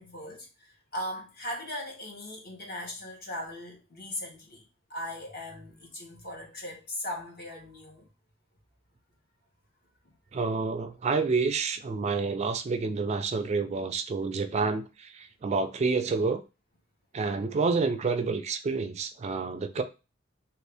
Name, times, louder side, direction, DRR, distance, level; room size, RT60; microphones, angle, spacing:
voice 1, 0.0-8.1 10.0-10.1, left 1 dB, 50° left, 1.2 m, -39 dB
voice 2, 10.3-16.4 17.1-19.8, right 4 dB, 35° right, 0.3 m, -28 dB
3.0 x 2.6 x 3.4 m
head